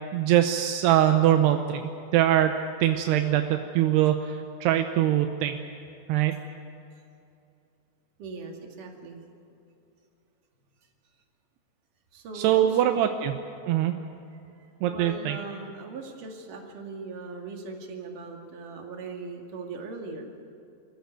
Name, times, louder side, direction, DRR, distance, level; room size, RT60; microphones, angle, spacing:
voice 1, 0.1-2.5 2.8-5.6 6.1-6.4 12.4-13.3 13.7-14.0 14.8-15.4, right 12 dB, 80° right, 6 dB, 2.9 m, -23 dB
voice 2, 8.2-9.2 12.1-13.1 14.6-20.3, right 3 dB, 55° right, 1 dB, 3.7 m, -39 dB
26.5 x 15.0 x 9.4 m, 2.7 s
omnidirectional pair, 4.7 m